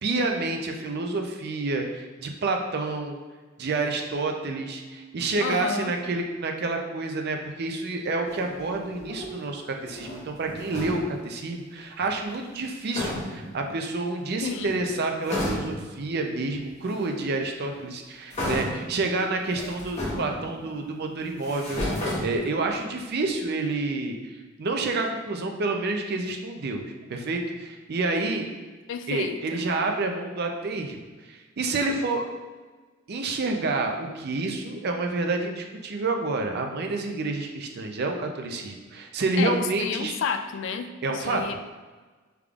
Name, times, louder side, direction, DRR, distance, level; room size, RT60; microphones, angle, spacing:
voice 1, 0.0-3.2 3.6-21.9 22.2-26.8 27.1-28.4 29.1-32.3 33.1-40.1 41.0-41.4, right 3 dB, 50° right, 3 dB, 0.5 m, -29 dB
voice 2, 5.4-5.9 14.4-14.7 28.9-29.6 39.4-41.6, left 6 dB, 60° left, 8 dB, 0.3 m, -31 dB
sound 1, 8.2-9.4 9.8-11.2 12.6-12.7 12.9-13.6 14.4-14.9 15.2-16.0 16.9-17.0 18.3-19.0 19.5-20.8 21.3-22.8, left 1 dB, 35° left, 1.0 m, -33 dB
5.0 x 3.5 x 2.4 m, 1.3 s
head